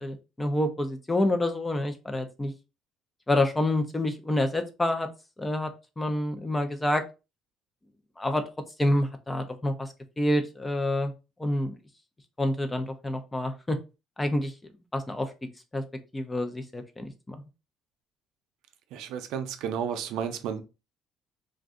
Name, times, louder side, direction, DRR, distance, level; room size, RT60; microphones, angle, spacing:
voice 1, 0.0-2.5 3.3-5.1 5.4-7.0 8.2-8.4 8.8-9.9 10.2-11.1 11.4-11.8 12.4-13.8 14.2-14.5 14.9-15.3 15.7-15.8 16.1-17.4, left 1 dB, 10° left, 0.5 m, -27 dB
voice 2, 18.9-20.6, right 8 dB, 80° right, 0.5 m, -32 dB
2.5 x 2.2 x 3.6 m
cardioid pair, 140°, 0 cm